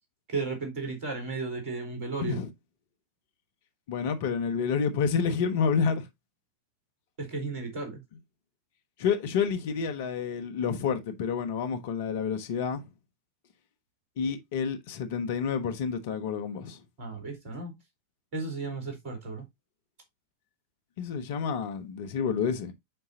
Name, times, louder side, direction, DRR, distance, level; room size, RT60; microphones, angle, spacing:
voice 1, 0.3-2.4 7.2-8.0 17.0-17.7 18.3-19.5, right 3 dB, 45° right, 4.0 m, -34 dB
voice 2, 2.2-2.5 3.9-6.1 9.0-12.8 14.2-16.8 21.0-22.7, left 6 dB, 50° left, 1.2 m, -29 dB
7.9 x 5.5 x 2.8 m
figure-of-eight pair, 90°, 0 cm